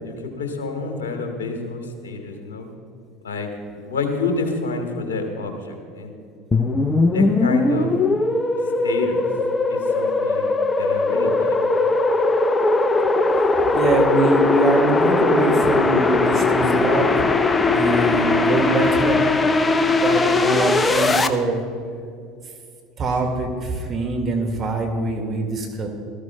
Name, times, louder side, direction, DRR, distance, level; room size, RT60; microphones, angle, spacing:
voice 1, 0.0-2.7 3.2-6.2 7.1-7.9 8.8-9.3 9.7-11.6, left 3 dB, 80° left, 4 dB, 1.7 m, -28 dB
sound 1, 6.5-21.3, left 3 dB, 20° left, 0.8 m, -19 dB
voice 2, 13.7-17.1 17.7-19.3 20.0-21.6 23.0-25.9, right 2 dB, 40° right, 2 dB, 2.2 m, -23 dB
19.5 x 14.0 x 2.3 m, 2.4 s
hypercardioid pair, 75°, 0 cm